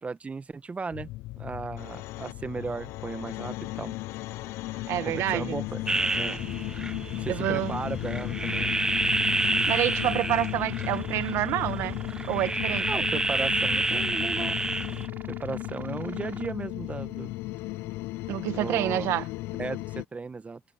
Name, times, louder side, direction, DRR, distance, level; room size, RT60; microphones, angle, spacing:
voice 1, 0.0-1.1 1.4-3.9 5.0-6.4 7.2-8.7 12.9-14.5 15.3-17.3 18.4-19.1 19.6-20.6, right 4 dB, 30° right, 1.1 m, -36 dB
sound 1, 0.9-20.0, left 19 dB, 90° left, 0.5 m, -35 dB
voice 2, 4.9-5.6 7.3-7.7 9.5-12.0 12.3-12.9 18.3-19.2, right 14 dB, 85° right, 1.1 m, -28 dB
sound 2, 5.9-15.1, right 2 dB, 15° right, 0.4 m, -29 dB
sound 3, 8.4-16.5, right 6 dB, 45° right, 4.4 m, -47 dB
supercardioid pair, 70°, 4 cm